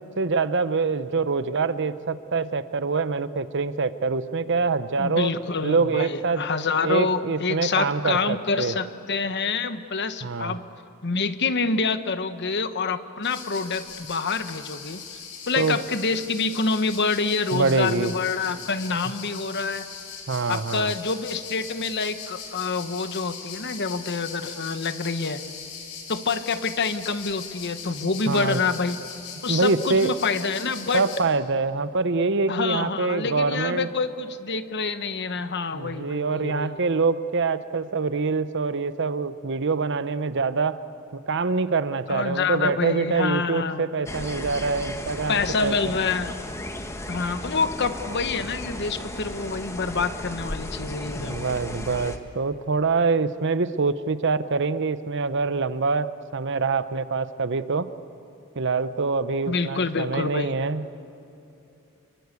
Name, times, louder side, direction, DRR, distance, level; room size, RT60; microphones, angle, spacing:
voice 1, 0.2-5.3 5.6-6.4 6.8-8.7 10.2-10.6 15.6-15.8 17.5-18.1 20.3-20.9 28.0-28.6 29.5-30.1 30.9-33.9 35.7-40.8 41.1-45.8 51.2-57.9 58.6-60.8, right 4 dB, 55° right, 13 dB, 0.8 m, -25 dB
voice 2, 5.0-10.6 11.0-15.0 15.5-19.9 20.5-25.4 26.1-29.0 29.4-31.0 32.5-36.8 42.1-43.8 45.3-46.4 47.1-51.5 59.5-60.5, left 4 dB, 50° left, 10 dB, 1.1 m, -27 dB
sound 1, 13.2-31.2, left 6 dB, 70° left, 4.3 m, -40 dB
sound 2, 44.1-52.2, left 1 dB, 15° left, 1.3 m, -35 dB
27.5 x 22.5 x 8.4 m, 2.7 s
head